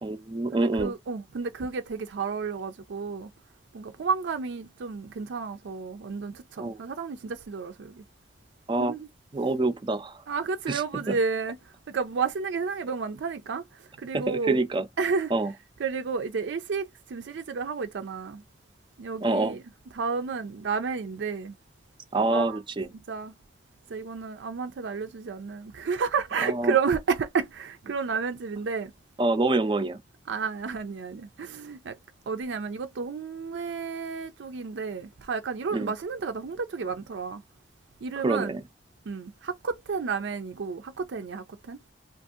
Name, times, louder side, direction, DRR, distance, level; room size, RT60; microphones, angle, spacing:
voice 1, 0.0-0.9 6.6-6.8 8.7-8.9 9.3-10.2 10.7-11.2 14.1-14.9 15.3-15.5 19.2-19.6 22.1-22.9 26.4-26.8 29.2-30.0 35.7-35.9 38.2-38.6, right 2 dB, 25° right, 0.4 m, -26 dB
voice 2, 0.5-3.3 3.7-8.0 8.8-9.1 10.3-11.6 11.9-13.6 14.0-14.6 15.0-15.3 15.8-18.4 19.0-19.6 19.9-21.5 22.3-22.6 22.9-23.4 23.9-28.9 30.3-32.0 32.3-37.4 38.0-38.6 39.1-41.8, right 5 dB, 90° right, 0.4 m, -31 dB
2.7 x 2.4 x 2.4 m
head